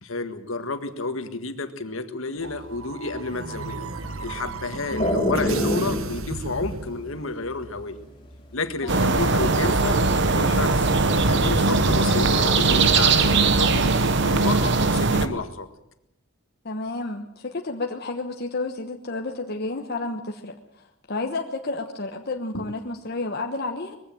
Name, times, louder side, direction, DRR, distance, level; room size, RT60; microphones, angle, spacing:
voice 1, 0.0-3.9 4.2-8.0 8.5-10.9 11.2-15.7 22.5-22.7, left 3 dB, 70° left, 8 dB, 1.8 m, -31 dB
sound 1, 2.4-7.4, right 3 dB, 80° right, 1.4 m, -35 dB
sound 2, 2.5-9.0 9.3-12.8 13.1-14.3, left 1 dB, 25° left, 5.2 m, -28 dB
sound 3, 8.9-15.3, right 3 dB, 55° right, 1.2 m, -20 dB
voice 2, 16.6-23.9, left 2 dB, 50° left, 3 dB, 1.2 m, -31 dB
21.0 x 16.0 x 7.8 m, 0.79 s
head